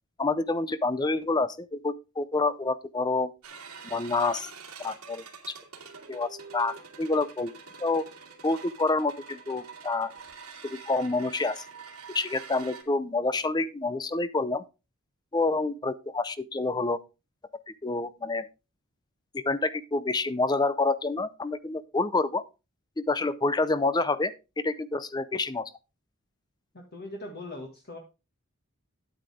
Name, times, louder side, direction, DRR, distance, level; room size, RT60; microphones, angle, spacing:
voice 1, 0.2-3.3 3.8-4.5 4.8-5.5 6.1-7.5 7.8-8.1 8.4-10.1 10.6-11.6 12.1-14.6 15.3-17.0 17.8-18.5 19.3-22.4 23.0-25.7, left 3 dB, 20° left, 0.5 m, -28 dB
sound 1, 3.4-12.8, right 5 dB, 90° right, 2.1 m, -46 dB
voice 2, 26.7-28.0, left 1 dB, 45° left, 1.8 m, -40 dB
9.6 x 8.7 x 3.5 m
head